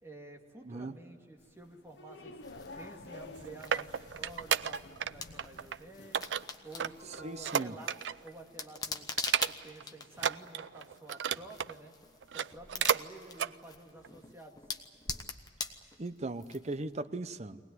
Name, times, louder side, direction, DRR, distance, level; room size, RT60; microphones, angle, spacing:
voice 1, 0.0-2.4 2.8-6.3 6.6-8.0 8.2-9.1 9.4-11.9 12.3-14.6, right 2 dB, 15° right, 1 dB, 2.3 m, -51 dB
sound 1, 1.4-7.6, left 2 dB, 70° left, 1.1 m, -51 dB
sound 2, 2.4-17.0, left 4 dB, 20° left, 1.1 m, -45 dB
sound 3, 3.2-5.1 5.4-5.8 6.1-8.3 8.6-8.8 9.2-9.8 10.1-11.7 12.2-13.1 13.3-13.5 14.0-14.1, right 8 dB, 85° right, 0.5 m, -32 dB
voice 2, 7.2-7.8 16.0-17.6, right 2 dB, 40° right, 12 dB, 0.7 m, -38 dB
23.5 x 19.0 x 9.6 m, 2.2 s
head